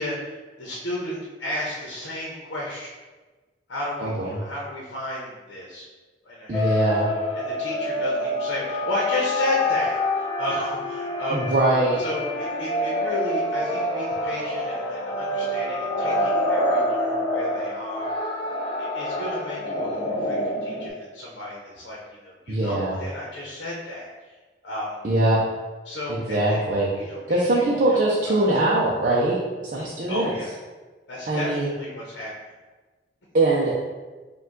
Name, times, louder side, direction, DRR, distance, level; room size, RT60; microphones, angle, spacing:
voice 1, 0.0-2.9 3.7-5.9 6.2-6.9 7.3-11.5 12.0-18.1 18.8-24.4 24.6-25.0 25.8-26.6 26.9-28.0 28.3-28.5 29.8-30.5 31.1-32.5, left 1 dB, 80° left, -4 dB, 0.8 m, -33 dB
voice 2, 4.0-4.3 6.5-7.1 11.3-12.0 22.5-23.0 25.0-25.4 26.1-26.9 27.3-30.3 31.3-31.7 33.3-33.7, right 2 dB, 45° right, -5 dB, 0.5 m, -22 dB
sound 1, 6.5-20.9, left 1 dB, 30° left, 0.6 m, -27 dB
5.1 x 2.3 x 3.7 m, 1.3 s
head